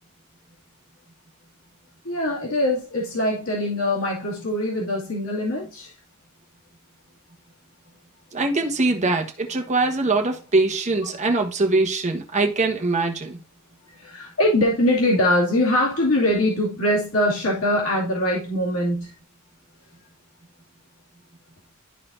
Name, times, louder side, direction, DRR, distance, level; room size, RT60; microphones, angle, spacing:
voice 1, 2.0-5.9 11.0-11.1 13.9-19.1, left 1 dB, 85° left, 2.4 m, -22 dB
voice 2, 8.3-13.4, right 3 dB, 35° right, 1.2 m, -22 dB
12.5 x 4.2 x 2.6 m
head